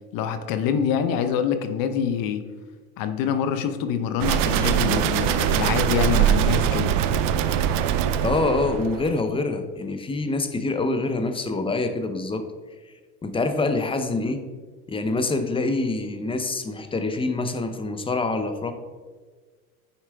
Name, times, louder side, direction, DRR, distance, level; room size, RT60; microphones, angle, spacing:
voice 1, 0.1-2.4 3.0-6.9, left 8 dB, 55° left, 9 dB, 0.8 m, -25 dB
sound 1, 4.2-9.2, right 9 dB, 50° right, 0.6 m, -22 dB
voice 2, 8.2-12.5 13.2-14.4 14.9-18.7, left 3 dB, 15° left, 8 dB, 0.6 m, -25 dB
9.9 x 4.4 x 3.4 m, 1.4 s
supercardioid pair, 105°, 42 cm